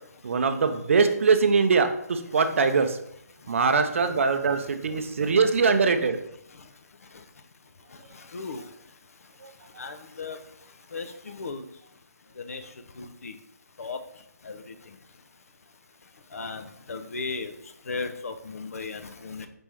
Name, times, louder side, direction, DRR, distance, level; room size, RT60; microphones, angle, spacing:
voice 1, 0.2-3.0 3.5-6.2 9.4-9.5, right 5 dB, 50° right, 8 dB, 0.5 m, -22 dB
voice 2, 9.8-10.4 10.9-11.1 11.4-11.6 12.5-12.6 13.0-13.3 13.8-14.0 14.5-14.6 16.3-17.5 17.9-19.5, left 4 dB, 60° left, 8 dB, 0.5 m, -35 dB
5.1 x 2.9 x 3.4 m, 0.75 s
figure-of-eight pair, 145°, 9 cm